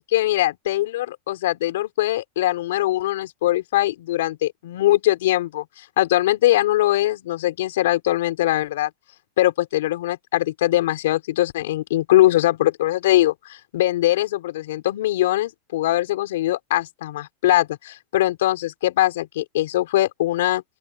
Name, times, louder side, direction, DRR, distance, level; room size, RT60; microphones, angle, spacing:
voice 1, 0.1-8.9 9.4-20.6, left 15 dB, 85° left, 5.1 m, -21 dB
open air
supercardioid pair, 165°, 0 cm